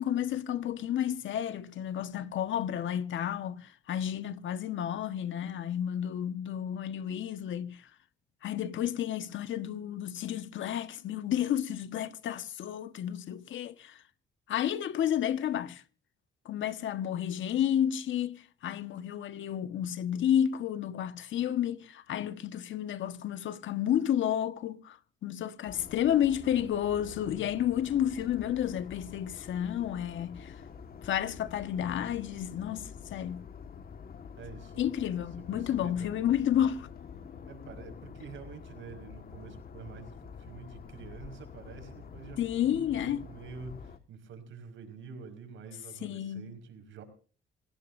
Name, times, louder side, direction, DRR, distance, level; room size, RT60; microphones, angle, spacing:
voice 1, 0.0-7.9 8.4-14.0 14.5-15.8 16.4-30.5 31.0-33.4 34.8-36.9 42.4-43.2 46.0-46.5, left 10 dB, 75° left, 1.4 m, -31 dB
sound 1, 25.6-44.0, left 6 dB, 50° left, 1.7 m, -47 dB
voice 2, 34.4-34.9 35.4-36.3 37.5-47.0, right 5 dB, 75° right, 5.3 m, -47 dB
28.0 x 17.5 x 2.7 m
cardioid pair, 90°, 20 cm